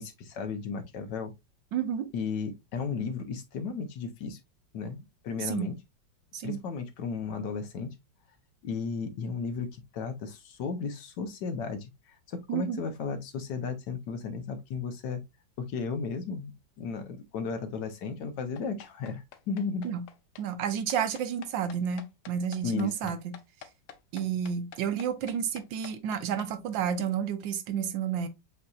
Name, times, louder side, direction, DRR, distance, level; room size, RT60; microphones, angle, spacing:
voice 1, 0.0-1.3 2.1-4.4 4.7-5.8 6.4-7.9 8.6-15.2 15.6-19.9 22.6-23.1, left 5 dB, 70° left, 1.3 m, -34 dB
voice 2, 1.7-2.1 5.4-5.7 6.3-6.6 12.5-12.8 19.8-20.0 20.4-23.3 24.1-28.3, right 8 dB, 80° right, 1.4 m, -31 dB
sound 1, 18.6-26.5, left 9 dB, 85° left, 1.4 m, -48 dB
7.7 x 2.7 x 2.3 m
omnidirectional pair, 2.1 m